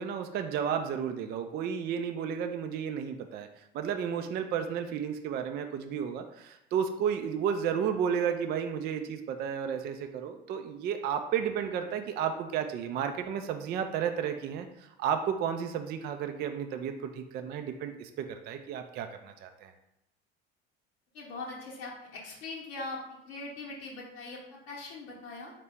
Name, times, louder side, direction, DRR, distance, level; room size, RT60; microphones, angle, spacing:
voice 1, 0.0-19.7, right 8 dB, 30° right, 7 dB, 0.4 m, -32 dB
voice 2, 21.1-25.5, left 3 dB, 65° left, -3 dB, 0.9 m, -41 dB
4.3 x 2.8 x 3.4 m, 0.83 s
figure-of-eight pair, 60°, 33 cm